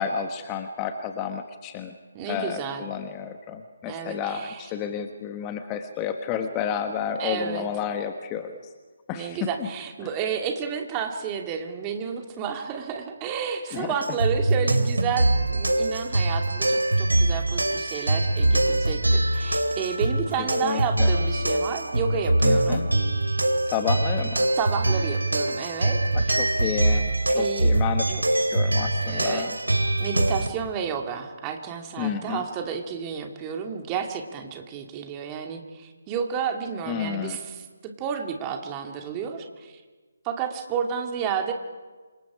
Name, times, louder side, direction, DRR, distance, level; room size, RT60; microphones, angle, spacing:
voice 1, 0.0-1.9 2.3-8.6 9.1-9.7 13.7-13.9 20.6-21.1 22.4-22.9 23.6-24.5 26.1-29.6 32.0-32.4 36.9-37.4, left 7 dB, 20° left, 7 dB, 1.4 m, -31 dB
voice 2, 2.1-2.9 3.9-4.7 7.2-7.7 9.1-22.8 24.6-26.0 27.3-27.7 28.1-28.2 29.0-29.5 30.0-39.7 40.2-41.5, right 7 dB, 20° right, 4 dB, 2.4 m, -31 dB
sound 1, 14.0-30.5, right 1 dB, 80° right, 2.5 m, -23 dB
27.5 x 26.0 x 5.0 m, 1.4 s
figure-of-eight pair, 145°, 0 cm